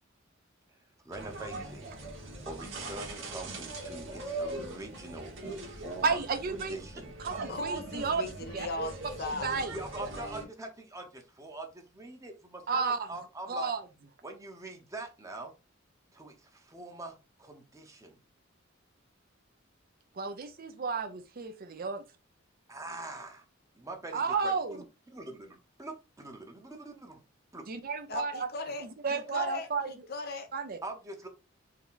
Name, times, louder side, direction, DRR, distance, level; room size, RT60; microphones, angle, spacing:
voice 1, 1.0-1.9 2.2-6.2 6.7-7.1 9.7-13.7 14.2-15.5 16.1-18.2 22.7-23.5 23.7-27.2 27.5-27.6 30.8-31.3, right 2 dB, 15° right, 0.9 m, -43 dB
sound 1, 1.1-10.4, right 2 dB, 70° right, 1.5 m, -41 dB
voice 2, 6.0-6.8 7.2-8.2 8.5-8.7 9.4-9.7 12.7-13.1 13.5-13.8 20.1-22.0 24.1-24.8 27.7-28.5 28.8-29.9 30.5-30.8, right 5 dB, 45° right, 0.6 m, -32 dB
voice 3, 7.3-9.5 28.1-30.5, left 2 dB, 50° left, 0.7 m, -38 dB
4.6 x 2.2 x 3.9 m
head